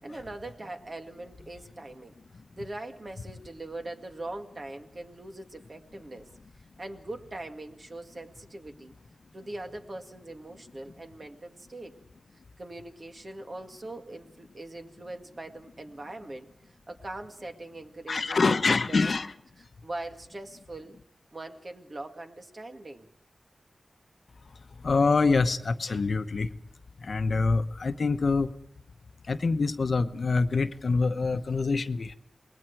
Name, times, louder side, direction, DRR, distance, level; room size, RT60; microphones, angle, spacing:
voice 1, 0.0-2.2 2.6-6.3 6.8-8.9 9.3-11.9 12.6-19.1 19.6-21.0 21.3-23.1, right 2 dB, 45° right, 5 dB, 2.0 m, -41 dB
voice 2, 18.1-19.3 24.8-26.5 27.0-28.5 29.3-32.1, left 4 dB, 65° left, 9 dB, 1.0 m, -25 dB
28.0 x 20.5 x 4.7 m, 0.70 s
wide cardioid pair, 80°, 0 cm